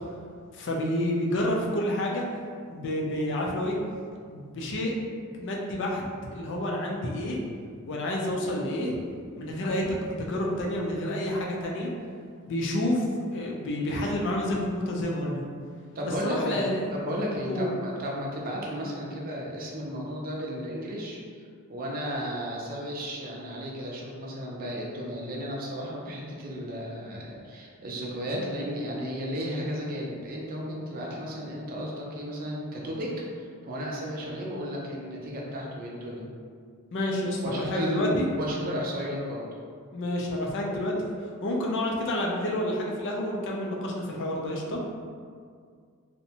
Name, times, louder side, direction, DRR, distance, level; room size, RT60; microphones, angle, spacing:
voice 1, 0.5-2.2 2.7-3.8 4.3-4.9 5.3-6.0 6.3-7.4 7.9-9.0 9.4-11.9 12.5-13.0 13.3-15.4 16.2-16.8 17.5-17.7 36.9-38.3 39.9-40.9 41.4-44.8, left 1 dB, 55° left, -1 dB, 0.4 m, -29 dB
voice 2, 15.9-21.4 21.7-36.3 37.4-39.4, equal, 40° right, -3 dB, 0.5 m, -34 dB
2.6 x 2.1 x 2.8 m, 2.1 s
head